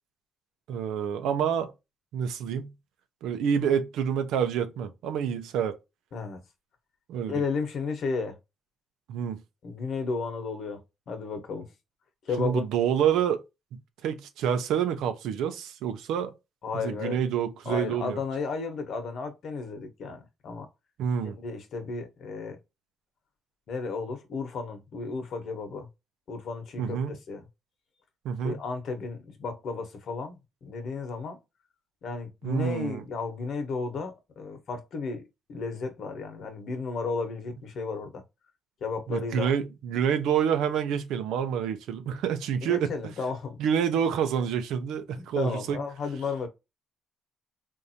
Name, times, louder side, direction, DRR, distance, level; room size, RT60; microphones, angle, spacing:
voice 1, 0.7-1.7 2.1-2.7 3.2-5.8 7.1-7.4 9.1-9.4 12.4-13.4 14.0-16.3 16.7-18.2 21.0-21.4 26.8-27.2 28.2-28.6 32.4-33.0 39.1-42.9 43.6-45.8, right 8 dB, 85° right, 0.6 m, -27 dB
voice 2, 7.3-8.4 9.6-10.8 11.1-11.7 12.2-12.7 16.6-17.2 17.6-20.7 21.2-22.6 23.7-25.9 26.3-27.4 28.4-31.4 32.0-35.2 35.5-38.2 38.8-39.5 42.6-43.6 45.2-46.5, left 4 dB, 65° left, 1.1 m, -33 dB
3.6 x 2.6 x 2.7 m
cardioid pair, 90°, 0 cm